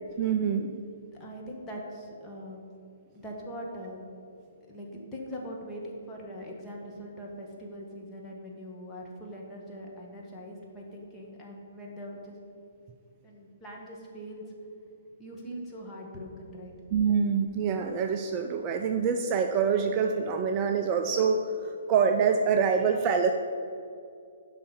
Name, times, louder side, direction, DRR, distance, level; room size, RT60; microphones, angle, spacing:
voice 1, 0.2-0.8 16.9-23.3, right 6 dB, 30° right, 5 dB, 0.5 m, -26 dB
voice 2, 1.0-2.6 3.1-4.0 4.7-12.3 13.2-14.4 15.2-16.7, equal, 10° left, -3 dB, 1.7 m, -42 dB
11.0 x 4.1 x 7.1 m, 2.5 s
figure-of-eight pair, 125°, 0 cm